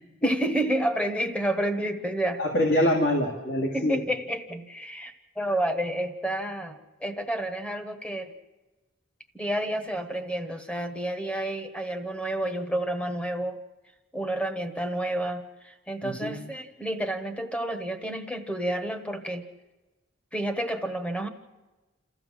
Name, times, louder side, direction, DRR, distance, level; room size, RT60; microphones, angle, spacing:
voice 1, 0.2-2.4 3.7-8.3 9.3-13.6 14.1-19.5 20.3-21.3, right 1 dB, 5° left, 7 dB, 1.2 m, -30 dB
voice 2, 2.4-4.0 16.0-16.4, left 1 dB, 55° left, 0 dB, 2.2 m, -25 dB
28.0 x 14.0 x 7.5 m, 1.2 s
head